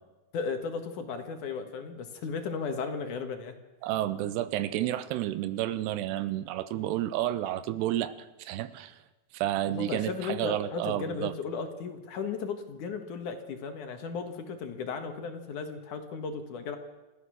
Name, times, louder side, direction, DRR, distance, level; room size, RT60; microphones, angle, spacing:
voice 1, 0.3-3.6 9.7-16.8, left 5 dB, 60° left, 6 dB, 2.7 m, -35 dB
voice 2, 3.8-9.0 9.3-11.3, right 13 dB, 85° right, 13 dB, 2.9 m, -31 dB
28.0 x 14.5 x 6.4 m, 1.1 s
omnidirectional pair, 4.7 m